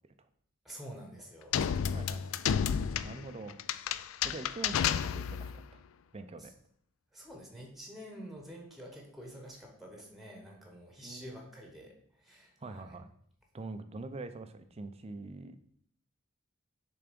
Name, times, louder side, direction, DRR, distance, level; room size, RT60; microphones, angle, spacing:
voice 1, 0.6-1.6 6.4-6.5 7.1-12.8, equal, ahead, 1 dB, 1.0 m, -48 dB
sound 1, 1.5-5.6, left 8 dB, 65° left, 0.3 m, -31 dB
voice 2, 1.9-2.5 3.0-3.6 4.2-4.8 5.0-5.8 6.1-6.5 11.0-11.5 12.6-13.1 13.5-15.6, right 3 dB, 30° right, 10 dB, 0.4 m, -44 dB
6.8 x 3.5 x 5.1 m, 0.67 s
head